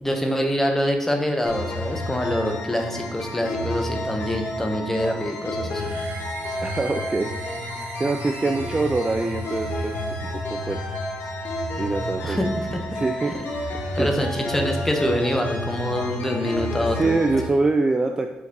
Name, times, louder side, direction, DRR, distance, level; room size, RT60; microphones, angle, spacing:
voice 1, 0.0-5.9 12.2-12.8 14.0-17.2, equal, 10° left, 3 dB, 0.9 m, -25 dB
sound 1, 1.5-17.5, left 1 dB, 70° left, 1.5 m, -30 dB
sound 2, 5.6-10.5, right 6 dB, 75° right, 0.6 m, -41 dB
voice 2, 6.6-7.4 7.7-11.0 11.8-12.4 12.9-14.1 16.8-18.3, right 3 dB, 20° right, 5 dB, 0.4 m, -25 dB
5.0 x 4.0 x 5.3 m, 0.96 s
cardioid pair, 110°, 3 cm